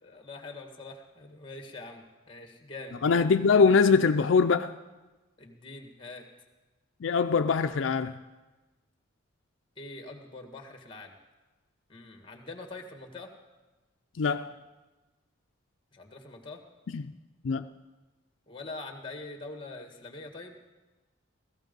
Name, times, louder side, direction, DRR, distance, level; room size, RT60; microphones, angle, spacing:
voice 1, 0.0-3.1 5.4-6.3 9.8-11.1 11.9-13.3 15.9-16.6 18.5-20.5, left 2 dB, 25° left, 1.7 m, -44 dB
voice 2, 3.0-4.8 7.0-8.1 14.2-14.5 16.9-17.0 17.4-17.7, left 5 dB, 75° left, 0.4 m, -23 dB
17.5 x 14.5 x 5.3 m
head